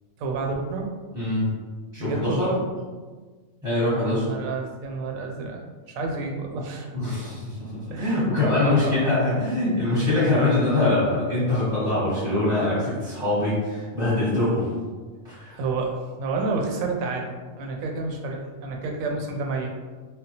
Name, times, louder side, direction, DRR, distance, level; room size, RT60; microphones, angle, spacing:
voice 1, 0.2-0.9 2.0-2.6 4.0-5.6 5.9-6.9 7.9-9.4 15.5-19.7, right 3 dB, 75° right, 1 dB, 1.0 m, -30 dB
voice 2, 1.1-1.5 1.9-2.5 3.6-4.2 6.9-14.7 15.2-15.6, left 2 dB, 5° right, -10 dB, 0.8 m, -23 dB
3.4 x 2.1 x 2.7 m, 1.4 s
omnidirectional pair, 1.5 m